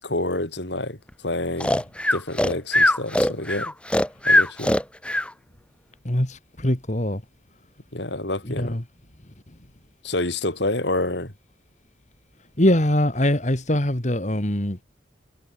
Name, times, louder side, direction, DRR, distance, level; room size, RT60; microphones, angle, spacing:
voice 1, 0.0-1.8 2.1-3.7 4.3-4.8 7.9-8.8 10.0-11.3, left 2 dB, 65° left, 4.5 m, -28 dB
Breathing, 1.6-5.3, left 1 dB, 5° left, 1.6 m, -20 dB
voice 2, 6.0-7.2 8.4-8.8 9.5-9.6 12.6-14.8, left 1 dB, 40° left, 2.4 m, -22 dB
head